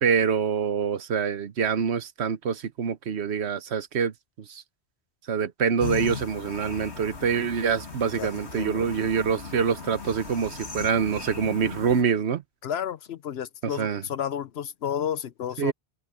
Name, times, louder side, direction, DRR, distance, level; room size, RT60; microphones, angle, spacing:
voice 1, 0.0-4.1 4.5-4.6 5.3-12.4 13.6-14.1 15.6-15.7, right 6 dB, 85° right, 1.2 m, -25 dB
sound 1, 5.8-12.0, left 5 dB, 90° left, 2.8 m, -38 dB
voice 2, 12.6-15.7, left 9 dB, 70° left, 1.0 m, -31 dB
omnidirectional pair, 1.1 m